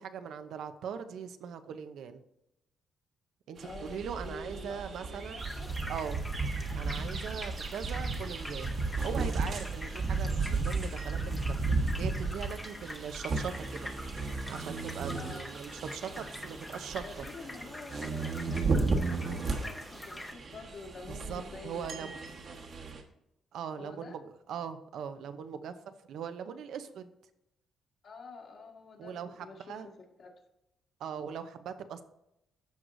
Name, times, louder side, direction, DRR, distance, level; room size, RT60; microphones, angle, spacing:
voice 1, 0.0-2.2 3.5-5.4 5.9-6.2 6.7-8.7 9.0-11.4 12.0-13.9 14.5-17.3 21.1-22.2 23.5-27.1 29.0-29.9 31.0-32.0, right 7 dB, 75° right, 9 dB, 0.7 m, -40 dB
voice 2, 3.6-5.7 15.1-15.4 17.0-22.1 23.8-24.1 28.0-30.3, left 3 dB, 55° left, 0 dB, 2.1 m, -48 dB
sound 1, 3.6-23.0, right 3 dB, 50° right, 1.3 m, -34 dB
sound 2, 5.4-20.3, left 1 dB, 10° left, 0.9 m, -45 dB
13.5 x 4.7 x 2.6 m, 0.85 s
cardioid pair, 115°, 0 cm